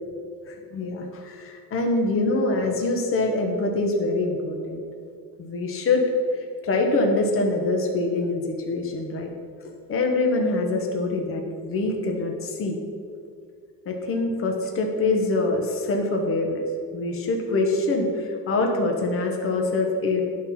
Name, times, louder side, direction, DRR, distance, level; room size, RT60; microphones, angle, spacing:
voice 1, 0.5-4.8 5.4-6.0 6.6-9.3 9.9-12.8 13.9-16.6 16.9-20.2, left 2 dB, 35° left, 2 dB, 1.1 m, -24 dB
11.0 x 4.2 x 5.7 m, 2.2 s
cardioid pair, 140°, 39 cm